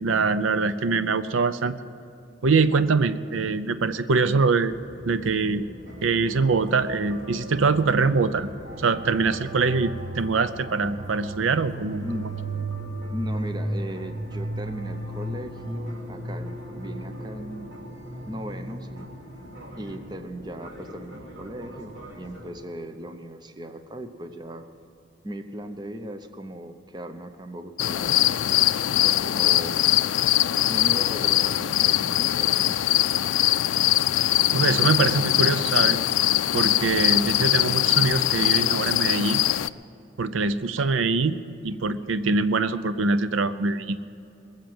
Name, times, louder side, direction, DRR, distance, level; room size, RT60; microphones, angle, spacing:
voice 1, 0.0-1.7 2.4-4.7 5.0-5.6 6.0-8.5 8.8-12.1 34.5-36.0 36.5-39.4 40.2-41.4 41.6-44.0, right 4 dB, 90° right, 13 dB, 0.6 m, -23 dB
sound 1, 4.7-22.5, right 1 dB, 65° right, 3.1 m, -36 dB
voice 2, 12.0-12.3 13.1-17.7 18.3-19.1 19.7-24.7 25.2-28.4 29.0-29.8 30.7-32.9 35.2-35.4, equal, 20° right, 8 dB, 0.7 m, -37 dB
sound 2, 27.8-39.7, left 14 dB, 80° left, 0.4 m, -22 dB
21.5 x 7.5 x 7.7 m, 2.8 s
head